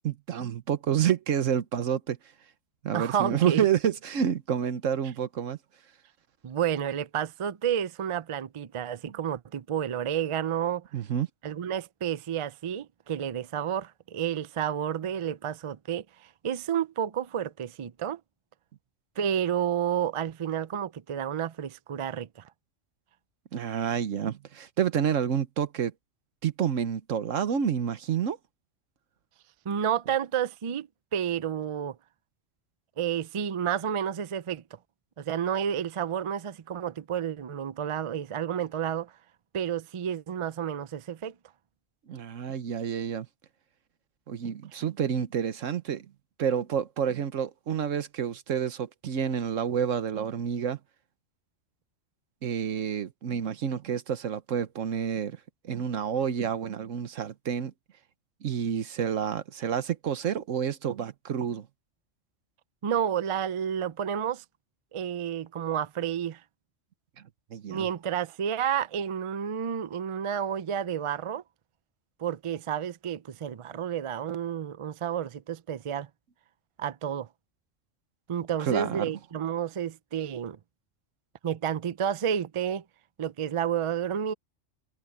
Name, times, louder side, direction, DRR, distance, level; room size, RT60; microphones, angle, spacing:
voice 1, 0.0-2.2 2.8-5.6 10.9-11.3 23.5-25.9 26.4-28.4 42.1-43.3 44.3-46.1 46.4-50.8 52.4-55.4 55.6-57.7 58.4-61.7 67.5-67.9 78.6-79.1, right 8 dB, 90° right, 1.4 m, -29 dB
voice 2, 2.9-3.7 6.4-10.9 11.4-18.2 19.2-22.5 29.7-32.0 33.0-34.6 35.2-39.1 39.5-41.3 62.8-64.4 64.9-66.4 67.7-71.4 72.2-76.1 76.8-77.3 78.3-80.6 81.4-82.8 83.2-84.3, right 9 dB, 55° right, 0.3 m, -30 dB
omnidirectional pair, 1.3 m